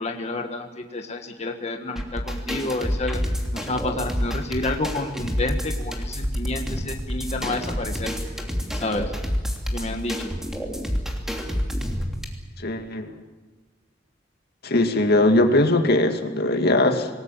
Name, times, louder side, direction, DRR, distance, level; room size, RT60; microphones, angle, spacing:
voice 1, 0.0-3.2 3.5-8.1 8.7-9.1 9.7-10.3, left 2 dB, 35° left, 4 dB, 1.6 m, -29 dB
sound 1, 2.0-12.2, equal, 5° right, 3.1 m, -28 dB
voice 2, 12.6-13.1 14.6-17.1, left 2 dB, 60° left, 5 dB, 2.4 m, -20 dB
26.5 x 19.5 x 7.5 m, 1.3 s
head